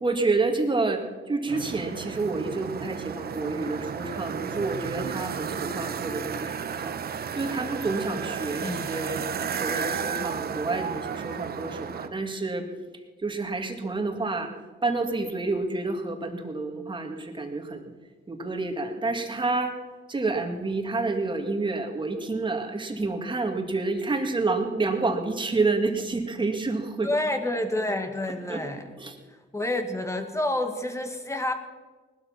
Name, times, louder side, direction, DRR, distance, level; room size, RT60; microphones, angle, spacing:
voice 1, 0.0-7.0 7.4-12.7 13.2-14.5 14.8-17.9 18.3-19.7 20.1-27.1 28.5-28.6 29.0-29.2, right 3 dB, 25° right, 4 dB, 2.2 m, -29 dB
sound 1, 1.5-12.1, right 7 dB, 50° right, 1.1 m, -33 dB
voice 2, 8.6-8.9 27.0-28.9 29.5-31.5, left 1 dB, 15° left, 6 dB, 1.9 m, -29 dB
19.0 x 12.5 x 5.9 m, 1.4 s
cardioid pair, 90°, 20 cm